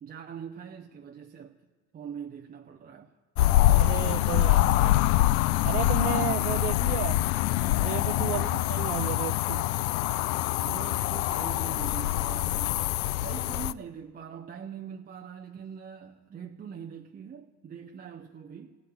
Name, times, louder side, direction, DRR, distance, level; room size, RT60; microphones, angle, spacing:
voice 1, 0.0-1.6 1.9-3.1 8.2-8.6 10.6-18.8, right 7 dB, 20° right, 0.7 m, -43 dB
sound 1, 3.4-13.7, left 15 dB, 60° left, 0.6 m, -25 dB
voice 2, 3.7-5.3 5.6-7.3 7.8-9.7, right 18 dB, 70° right, 0.5 m, -33 dB
15.5 x 7.8 x 9.5 m
hypercardioid pair, 90°, 48 cm